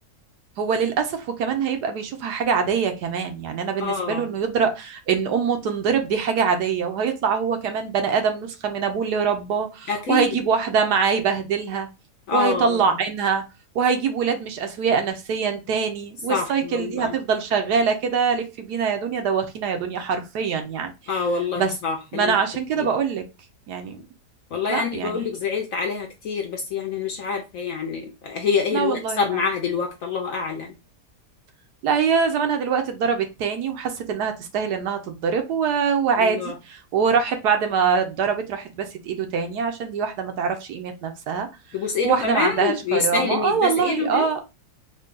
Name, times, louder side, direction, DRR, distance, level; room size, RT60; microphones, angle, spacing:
voice 1, 0.6-11.9 12.3-13.4 13.7-20.9 21.6-21.7 22.1-23.2 23.7-24.0 24.7-25.3 28.7-29.2 31.8-41.5 42.0-44.4, right 6 dB, 75° right, 1.2 m, -24 dB
voice 2, 3.8-4.3 9.9-10.4 12.3-12.8 16.3-17.2 21.1-22.4 22.8-22.9 24.5-30.7 36.2-36.6 41.7-44.3, left 5 dB, 65° left, 1.0 m, -26 dB
3.7 x 2.2 x 3.8 m
omnidirectional pair, 1.8 m